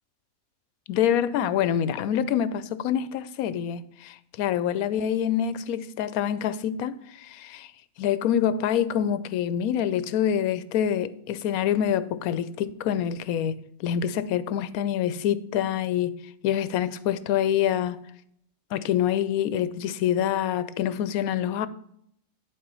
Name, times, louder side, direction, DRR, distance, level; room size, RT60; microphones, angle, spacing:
voice 1, 0.9-7.7 8.0-16.1 16.4-18.0 18.7-21.7, left 9 dB, 80° left, 1.0 m, -26 dB
11.5 x 4.1 x 5.3 m
omnidirectional pair, 1.5 m